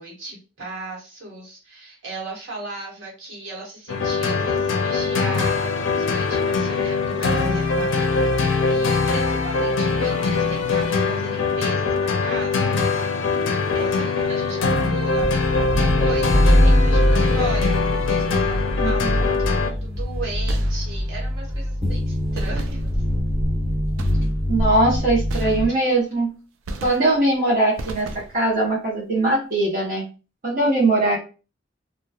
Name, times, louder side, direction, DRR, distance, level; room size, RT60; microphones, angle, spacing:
voice 1, 0.0-8.0 8.3-17.8 18.1-23.0, right 3 dB, 70° right, -3 dB, 1.1 m, -36 dB
sound 1, 3.9-19.7, left 4 dB, 70° left, 0.4 m, -22 dB
sound 2, 15.2-25.7, equal, 5° right, 1.1 m, -22 dB
voice 2, 18.8-19.2 24.5-26.3 26.8-28.1 28.3-30.0 30.4-31.2, right 2 dB, 45° right, -5 dB, 0.8 m, -20 dB
sound 3, 20.5-21.2 22.3-23.3 24.0-24.6 25.3-26.1 26.7-27.4 27.8-28.6, right 2 dB, 90° right, 0.4 m, -35 dB
2.8 x 2.2 x 2.3 m, 0.34 s
head